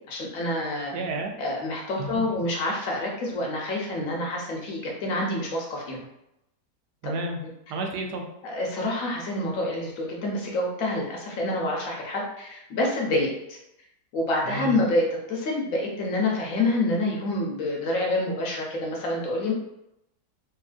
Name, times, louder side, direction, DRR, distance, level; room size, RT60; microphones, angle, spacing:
voice 1, 0.1-0.9 1.4-6.0 8.4-13.6 14.1-19.5, left 2 dB, 65° left, -1 dB, 0.9 m, -27 dB
voice 2, 0.9-1.3 2.0-2.2 7.0-7.4 7.7-8.2 14.4-14.8, right 2 dB, 85° right, 2 dB, 1.2 m, -31 dB
2.8 x 2.7 x 2.4 m, 0.84 s
omnidirectional pair, 1.7 m